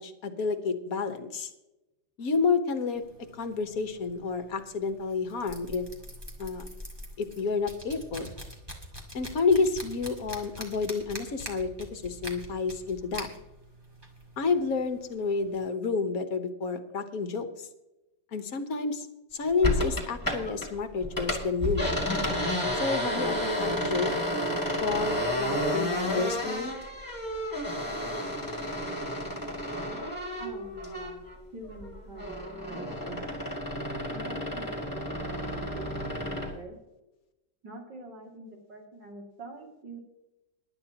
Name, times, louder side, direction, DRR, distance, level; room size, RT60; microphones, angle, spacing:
voice 1, 0.0-1.5 2.2-3.0 3.3-5.8 6.4-6.6 7.2-8.3 9.1-13.3 14.4-17.7 18.3-19.1 19.3-22.0 22.7-24.1 24.4-26.7, left 4 dB, 55° left, 8 dB, 1.5 m, -30 dB
sound 1, 3.0-15.6, equal, 15° right, 2.0 m, -45 dB
sound 2, 19.6-20.7 21.0-31.4 31.7-36.5, left 1 dB, 10° left, 2.4 m, -31 dB
voice 2, 30.3-31.2 31.5-32.4 32.7-33.3 34.1-36.8 37.6-40.0, right 3 dB, 65° right, 0 dB, 3.2 m, -45 dB
18.0 x 11.0 x 2.9 m, 0.96 s
omnidirectional pair, 2.0 m